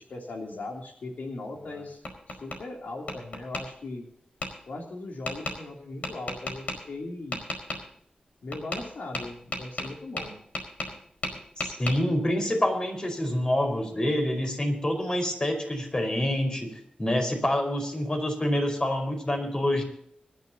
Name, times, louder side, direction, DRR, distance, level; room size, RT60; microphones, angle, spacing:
voice 1, 0.0-2.0 2.3-4.1 4.7-7.4 8.4-10.4, left 2 dB, 90° left, 1 dB, 3.1 m, -38 dB
Tap, 1.6-2.6 3.1-3.6 4.4-4.5 5.3-5.6 6.0-6.8 7.3-7.8 8.5-8.9 9.1-11.0 11.2-12.0, left 2 dB, 65° left, 4.7 m, -33 dB
voice 2, 11.6-16.7 17.0-19.8, left 1 dB, 30° left, 4 dB, 4.8 m, -27 dB
25.0 x 12.5 x 2.9 m, 0.68 s
wide cardioid pair, 80°, 3 cm